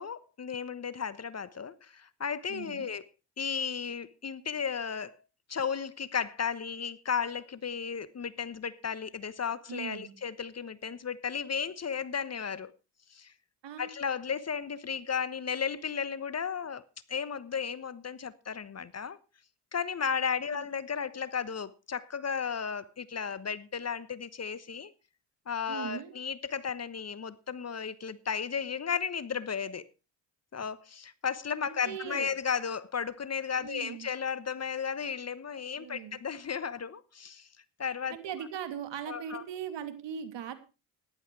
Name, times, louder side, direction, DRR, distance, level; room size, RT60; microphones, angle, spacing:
voice 1, 0.0-3.1 3.4-5.2 5.5-12.7 13.1-13.3 13.8-16.8 17.1-19.2 19.7-24.9 25.5-29.9 30.5-37.5 37.8-38.2 39.1-39.4, left 6 dB, 30° left, 1.1 m, -34 dB
voice 2, 2.5-2.9 9.7-10.1 13.6-13.9 20.5-20.6 25.7-26.1 31.6-32.3 33.6-34.1 35.8-36.2 38.1-40.5, right 8 dB, 60° right, 2.8 m, -39 dB
14.5 x 11.0 x 4.6 m
hypercardioid pair, 60°, 48 cm